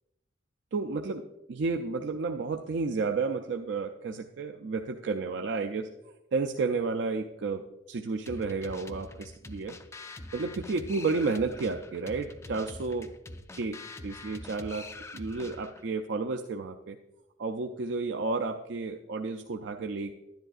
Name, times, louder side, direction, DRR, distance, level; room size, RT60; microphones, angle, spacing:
voice 1, 0.7-9.8 10.3-13.1 13.5-17.0 17.4-20.1, right 4 dB, 65° right, 4 dB, 0.4 m, -32 dB
sound 1, 8.3-15.9, left 2 dB, 15° left, 0.4 m, -45 dB
11.0 x 10.5 x 2.4 m, 0.92 s
head